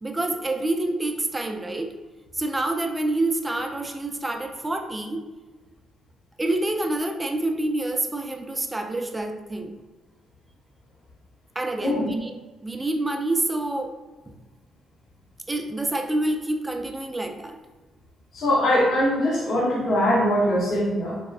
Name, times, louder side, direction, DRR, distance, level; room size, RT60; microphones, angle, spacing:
voice 1, 0.0-2.0 2.3-5.2 6.4-9.7 11.6-12.3 12.6-13.9 14.3-14.4 15.5-17.6, right 2 dB, 15° right, 4 dB, 0.3 m, -27 dB
voice 2, 18.3-21.2, equal, 65° left, -4 dB, 0.9 m, -22 dB
3.5 x 2.1 x 2.3 m, 1.3 s
cardioid pair, 90°, 0 cm